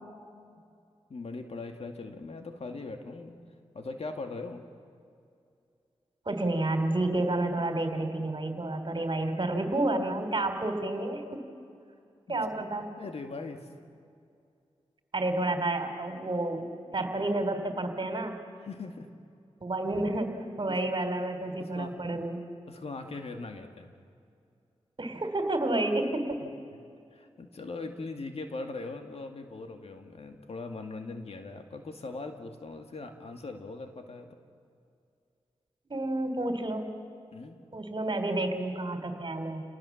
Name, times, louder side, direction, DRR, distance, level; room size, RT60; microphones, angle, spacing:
voice 1, 1.1-3.3 3.7-4.7 12.3-12.7 13.0-13.7 18.6-19.1 20.6-21.0 21.6-21.9 22.7-23.9 27.1-34.4 37.3-37.6, left 3 dB, 65° left, 5 dB, 2.2 m, -40 dB
voice 2, 6.2-11.4 12.3-12.9 15.1-18.4 19.6-22.4 25.0-26.4 35.9-36.9 37.7-39.6, right 2 dB, 45° right, 6 dB, 3.2 m, -30 dB
29.0 x 19.0 x 7.3 m, 2.4 s
cardioid pair, 50°, 11 cm